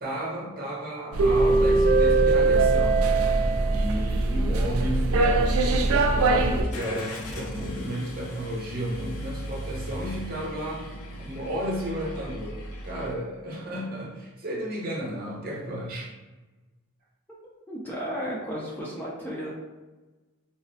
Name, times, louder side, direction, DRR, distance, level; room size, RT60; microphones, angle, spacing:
voice 1, 0.0-3.0 3.5-10.8 11.2-16.1, right 1 dB, 45° right, -4 dB, 0.8 m, -33 dB
sound 1, 1.1-6.6, right 3 dB, 85° right, 0.4 m, -21 dB
Car / Engine starting, 6.7-13.1, equal, 85° left, 0.5 m, -38 dB
voice 2, 17.7-19.6, equal, 10° left, -5 dB, 0.4 m, -33 dB
3.9 x 2.0 x 2.6 m, 1.2 s
head